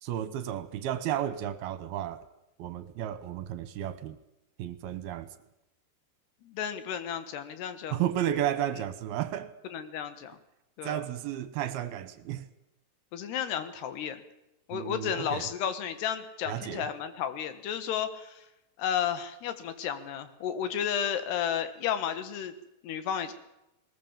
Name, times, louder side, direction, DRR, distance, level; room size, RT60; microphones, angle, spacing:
voice 1, 0.0-2.2 2.6-4.2 4.6-5.3 7.9-9.5 10.8-12.5 14.7-15.5 16.5-16.9, right 11 dB, 75° right, 12 dB, 2.8 m, -33 dB
voice 2, 6.4-8.0 9.7-10.4 10.8-11.0 13.1-14.2 14.7-18.5 18.8-22.5 22.8-23.3, left 9 dB, 75° left, 11 dB, 3.5 m, -32 dB
20.0 x 20.0 x 7.3 m, 0.90 s
omnidirectional pair, 4.8 m